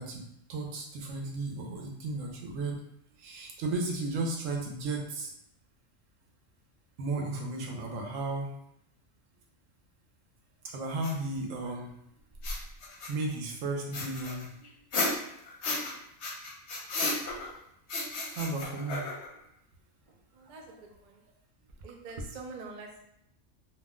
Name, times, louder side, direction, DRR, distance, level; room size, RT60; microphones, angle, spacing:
voice 1, 0.0-2.8 3.2-5.3 7.0-8.6 10.6-12.0 13.1-14.7 18.3-19.1 20.4-20.8, right 2 dB, 85° right, 1 dB, 1.0 m, -34 dB
sound 1, 11.0-11.1 12.3-13.3 13.9-15.9 16.2-17.5 17.9-19.4, left 2 dB, 65° left, 0.9 m, -33 dB
voice 2, 20.3-21.2 21.8-22.9, right 3 dB, 60° right, 1 dB, 0.4 m, -43 dB
2.5 x 2.1 x 3.5 m, 0.74 s
omnidirectional pair, 1.3 m